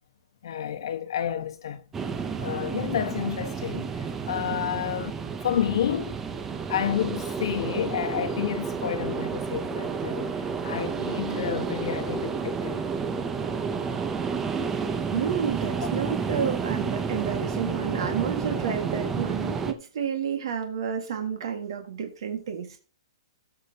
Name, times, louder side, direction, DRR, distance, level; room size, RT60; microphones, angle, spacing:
voice 1, 0.4-1.8 2.4-5.1 5.4-6.2 6.7-12.9 15.8-15.9, left 9 dB, 60° left, 1.3 m, -30 dB
sound 1, 1.9-19.7, right 5 dB, 10° right, 0.6 m, -31 dB
voice 2, 15.1-22.8, right 7 dB, 60° right, 1.8 m, -30 dB
18.0 x 6.7 x 2.8 m
hypercardioid pair, 170°, 3 cm